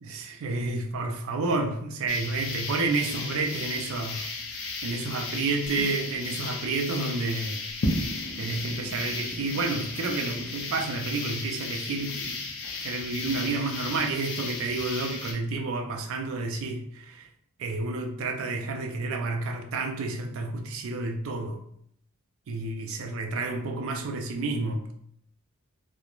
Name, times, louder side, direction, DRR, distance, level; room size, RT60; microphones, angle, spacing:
voice 1, 0.0-7.6 8.4-12.4 12.8-17.3 17.6-21.6 22.5-24.9, right 3 dB, 65° right, 4 dB, 0.4 m, -30 dB
sound 1, 2.1-15.3, left 3 dB, 60° left, 0.5 m, -34 dB
3.0 x 2.0 x 2.4 m, 0.69 s
head